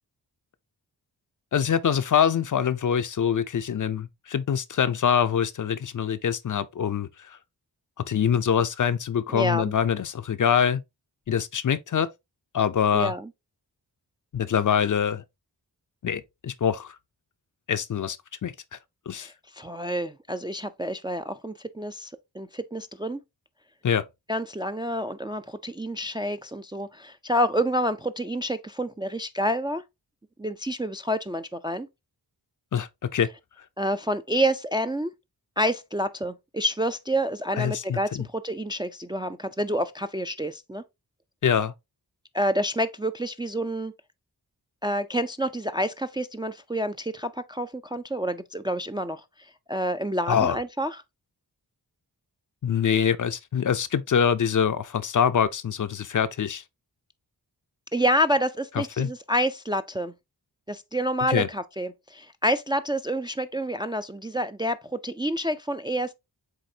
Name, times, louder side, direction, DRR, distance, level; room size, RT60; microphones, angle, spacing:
voice 1, 1.5-7.4 8.1-10.8 11.3-12.1 12.5-13.1 14.3-15.2 16.0-17.0 17.7-18.2 18.4-18.8 19.1-19.3 23.8-24.0 32.7-33.3 37.5-38.3 41.4-41.7 50.3-50.6 52.6-56.6 58.7-59.1 61.3-61.5, left 8 dB, 45° left, 0.5 m, -24 dB
voice 2, 9.3-9.7 12.9-13.3 19.1-23.2 24.3-29.8 30.4-31.9 33.8-35.1 35.6-40.8 42.3-43.9 44.8-49.2 49.7-50.9 57.9-60.1 60.7-64.8 65.0-66.1, equal, 10° right, 0.3 m, -28 dB
7.6 x 2.6 x 2.7 m
cardioid pair, 50°, 42 cm